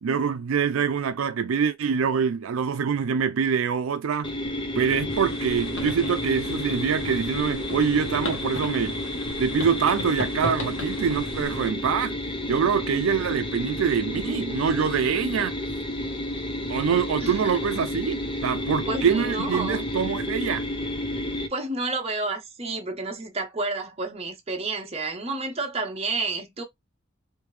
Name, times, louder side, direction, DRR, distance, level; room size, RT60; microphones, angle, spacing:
voice 1, 0.0-4.3 4.8-9.0 9.4-12.2 12.5-15.5 16.7-20.6, right 6 dB, 85° right, 0.4 m, -25 dB
sound 1, 4.2-21.5, left 1 dB, 25° left, 0.7 m, -31 dB
sound 2, 5.1-11.7, left 1 dB, 65° left, 1.1 m, -37 dB
voice 2, 17.2-17.5 18.9-19.8 21.5-26.6, right 3 dB, 30° right, 0.9 m, -30 dB
3.3 x 2.7 x 3.2 m
head